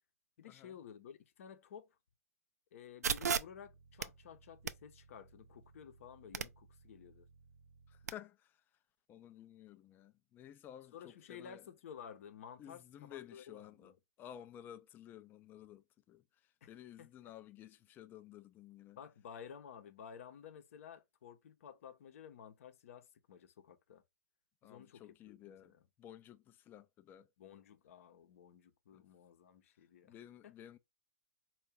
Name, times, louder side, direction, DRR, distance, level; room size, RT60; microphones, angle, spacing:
voice 1, 0.4-2.0 2.7-7.3 10.9-13.9 16.6-17.3 19.0-24.0 24.6-25.8 27.4-30.1 30.4-30.5, left 8 dB, 55° left, 0.8 m, -54 dB
sound 1, 3.0-8.1, right 6 dB, 75° right, 0.4 m, -41 dB
voice 2, 7.9-8.5 9.1-11.6 12.6-13.9 14.2-16.2 16.7-19.0 24.6-25.7 26.0-27.3 28.9-29.0 30.0-30.8, left 11 dB, 20° left, 0.4 m, -54 dB
4.5 x 2.3 x 3.6 m
figure-of-eight pair, 115°, 9 cm